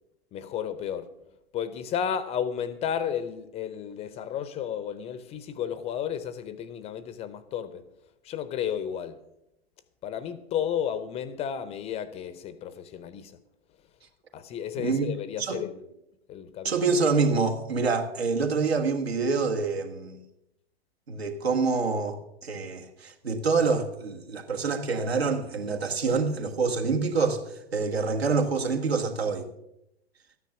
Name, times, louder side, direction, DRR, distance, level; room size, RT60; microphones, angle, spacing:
voice 1, 0.3-1.1 1.5-7.8 8.2-9.2 10.0-13.3 14.3-15.9 16.3-16.8, left 8 dB, 20° left, 0.6 m, -32 dB
voice 2, 14.8-15.6 16.6-20.2 21.1-29.5, right 4 dB, 70° right, 1.6 m, -26 dB
13.0 x 9.6 x 5.8 m
figure-of-eight pair, 100°, 32 cm